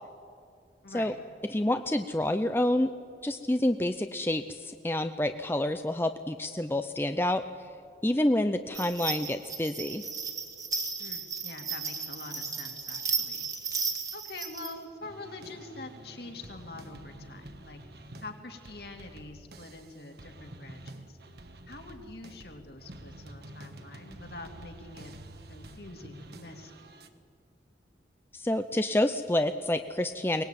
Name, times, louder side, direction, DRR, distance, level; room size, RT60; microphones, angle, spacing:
voice 1, 0.8-1.2 11.0-13.5 14.1-17.8 18.2-21.2 21.7-25.1 25.5-26.8, left 2 dB, 60° left, 3 dB, 2.7 m, -45 dB
voice 2, 1.5-2.9 3.2-7.4 8.0-10.0 28.3-30.4, left 1 dB, 10° left, 8 dB, 0.6 m, -28 dB
sound 1, 8.7-14.7, right 5 dB, 20° right, 1.8 m, -35 dB
sound 2, 15.0-27.1, right 1 dB, 60° right, 1.5 m, -48 dB
23.0 x 19.5 x 9.2 m, 2.3 s
head